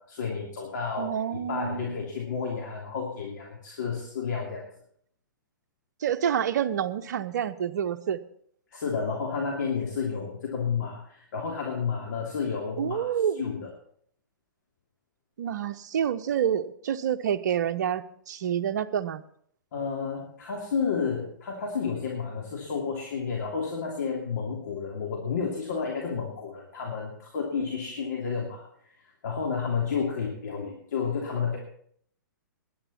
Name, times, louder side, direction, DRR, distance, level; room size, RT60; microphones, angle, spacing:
voice 1, 0.0-4.6 8.7-13.7 19.7-31.6, left 5 dB, 55° left, -2 dB, 3.1 m, -31 dB
voice 2, 1.0-2.0 6.0-8.2 12.8-13.4 15.4-19.2, right 9 dB, 55° right, 10 dB, 0.8 m, -28 dB
19.0 x 11.0 x 4.3 m, 0.65 s
figure-of-eight pair, 115°, 11 cm